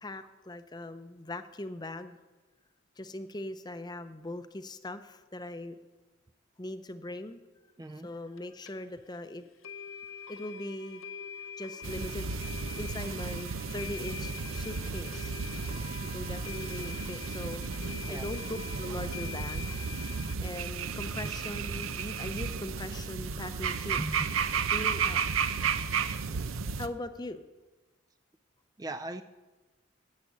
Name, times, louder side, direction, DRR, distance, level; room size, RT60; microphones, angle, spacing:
voice 1, 0.0-2.2 3.0-5.8 6.6-7.4 8.0-9.5 10.3-11.0 11.6-12.4 12.8-15.3 16.1-17.6 17.9-18.4 18.8-19.7 20.4-24.0 24.7-25.4 26.8-27.4, left 1 dB, 20° left, 10 dB, 0.6 m, -40 dB
voice 2, 7.8-8.1 18.0-18.3 21.2-21.3 23.3-23.7 24.0-24.3 28.8-29.2, right 2 dB, 20° right, 8 dB, 0.4 m, -39 dB
sound 1, 8.4-8.5 8.7-8.8 9.1-9.2 9.6-20.4, left 6 dB, 85° left, 0.8 m, -44 dB
sound 2, 11.8-26.9, right 6 dB, 90° right, 0.7 m, -33 dB
10.5 x 8.6 x 9.3 m, 1.2 s
head